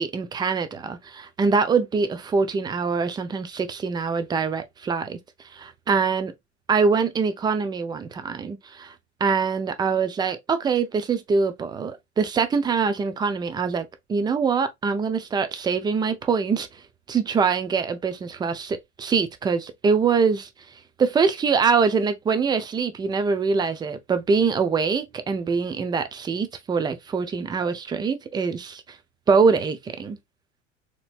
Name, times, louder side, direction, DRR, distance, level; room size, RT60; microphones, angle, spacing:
voice 1, 0.0-5.2 5.5-6.3 6.7-8.9 9.2-16.7 17.1-20.5 21.0-28.8 29.3-30.2, right 5 dB, 10° right, 0.4 m, -24 dB
4.0 x 2.9 x 2.3 m
figure-of-eight pair, 75°, 35 cm